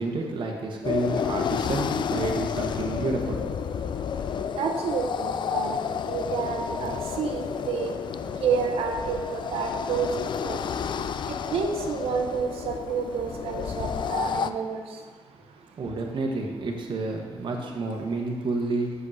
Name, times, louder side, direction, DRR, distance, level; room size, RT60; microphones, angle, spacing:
voice 1, 0.0-3.4 15.8-18.9, right 2 dB, 55° right, 0 dB, 1.1 m, -29 dB
sound 1, 0.8-14.5, left 7 dB, 55° left, 0.3 m, -31 dB
voice 2, 4.6-5.8 6.0-7.9 8.4-10.6 11.3-14.8, right 5 dB, 90° right, 3 dB, 0.7 m, -29 dB
6.2 x 5.2 x 5.5 m, 1.5 s
cardioid pair, 95°, 10 cm